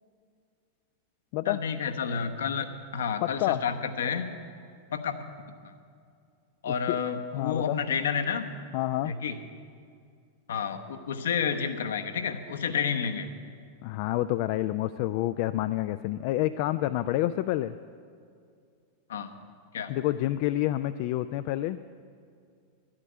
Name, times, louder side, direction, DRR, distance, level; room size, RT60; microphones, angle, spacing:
voice 1, 1.4-4.3 4.9-5.2 5.6-5.7 6.6-8.5 9.0-9.4 10.5-13.3 19.1-19.3 19.7-19.9, left 7 dB, 65° left, 7 dB, 0.9 m, -30 dB
voice 2, 3.2-3.6 6.7-7.0 7.3-7.8 8.7-9.1 13.8-17.8 19.9-21.8, left 15 dB, 45° left, 12 dB, 0.3 m, -28 dB
11.0 x 8.7 x 10.0 m, 2.3 s
figure-of-eight pair, 90°, 0 cm